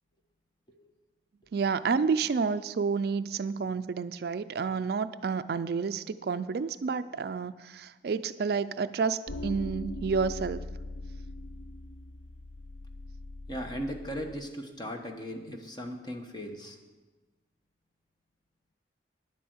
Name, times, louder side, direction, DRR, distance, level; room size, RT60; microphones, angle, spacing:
voice 1, 1.5-10.6, right 5 dB, 55° right, 12 dB, 0.3 m, -30 dB
sound 1, 9.3-14.4, left 2 dB, 75° left, 0.7 m, -41 dB
voice 2, 13.5-16.8, equal, 25° left, 4 dB, 1.1 m, -37 dB
10.0 x 8.2 x 7.8 m, 1.2 s
head